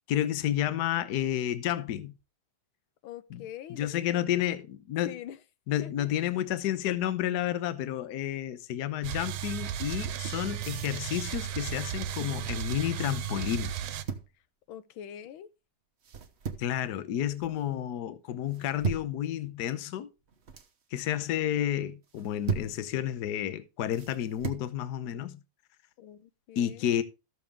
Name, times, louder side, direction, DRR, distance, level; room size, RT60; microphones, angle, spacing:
voice 1, 0.1-2.1 3.3-3.4 3.7-5.2 5.7-13.7 16.6-20.1 20.9-25.4 26.6-27.0, left 11 dB, 60° left, 1.2 m, -31 dB
voice 2, 3.0-4.4 5.0-5.4 5.8-6.1 14.7-15.5 26.0-26.9, left 10 dB, 85° left, 1.6 m, -44 dB
sound 1, 9.0-14.0, right 10 dB, 90° right, 1.6 m, -35 dB
sound 2, 10.2-10.5 11.8-12.5 13.7-14.3 16.0-16.8 17.2-17.6 18.5-19.2 20.2-20.7 22.0-22.8 23.9-24.7, right 5 dB, 40° right, 1.1 m, -37 dB
14.0 x 7.0 x 3.6 m
omnidirectional pair, 2.2 m